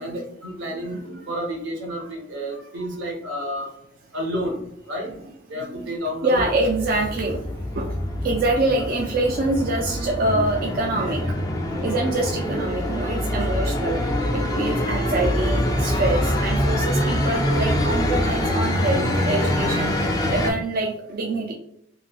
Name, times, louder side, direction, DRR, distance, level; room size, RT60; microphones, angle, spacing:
voice 1, 0.0-1.0 1.3-3.7 4.1-5.1 5.5-6.5 7.2-7.3 8.7-8.8, equal, 75° right, 2 dB, 0.8 m, -30 dB
voice 2, 0.9-1.2 5.0-7.4 7.8-7.9 8.2-11.2 11.8-14.0 14.3-21.5, right 2 dB, 50° right, 1 dB, 0.3 m, -25 dB
sound 1, 6.4-20.5, left 1 dB, 20° left, 0.4 m, -24 dB
3.0 x 2.8 x 2.2 m, 0.72 s
head